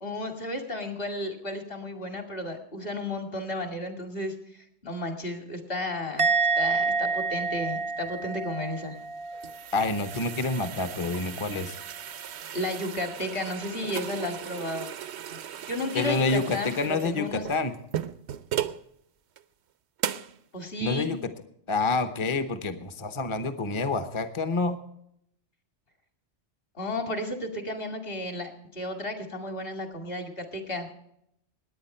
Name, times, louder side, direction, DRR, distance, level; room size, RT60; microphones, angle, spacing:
voice 1, 0.0-4.3 4.8-6.3 6.6-9.0 12.5-14.9 15.3-15.4 15.7-17.6 20.5-21.1 26.8-30.9, left 1 dB, 55° left, 4 dB, 2.5 m, -33 dB
Musical instrument, 6.2-9.6 9.8-10.3, right 4 dB, 40° right, 0.5 m, -28 dB
sound 1, 9.0-18.8 19.4-19.5 20.0-20.4, right 10 dB, 75° right, 0.9 m, -37 dB
voice 2, 9.7-11.8 15.9-17.7 20.8-21.2 21.7-24.8, left 3 dB, 30° left, 10 dB, 0.9 m, -28 dB
19.5 x 9.1 x 4.4 m, 0.74 s
omnidirectional pair, 1.2 m